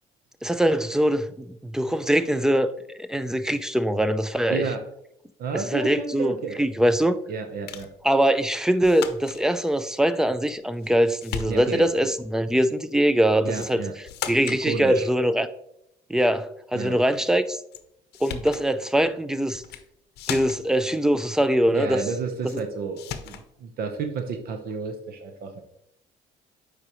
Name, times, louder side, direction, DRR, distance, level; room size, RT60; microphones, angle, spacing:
voice 1, 0.4-2.7 3.0-4.6 5.7-7.1 8.0-13.8 14.3-15.5 16.1-16.5 16.7-17.6 18.2-19.6 20.3-22.0, right 1 dB, 5° right, 12 dB, 0.4 m, -22 dB
voice 2, 4.5-4.8 5.4-6.6 7.3-7.9 11.5-11.9 13.4-13.9 14.5-15.1 16.7-17.0 21.7-25.6, right 5 dB, 65° right, 6 dB, 0.9 m, -31 dB
sound 1, 7.7-8.0 8.8-9.4 10.5-10.9 11.2-11.9 13.5-13.8 14.1-14.6 17.7-17.8 18.1-18.7 19.6-19.9 20.2-20.8 22.5-22.6 23.0-23.5, left 9 dB, 75° left, 0.7 m, -36 dB
8.0 x 4.9 x 3.0 m, 0.77 s
cardioid pair, 110°, 17 cm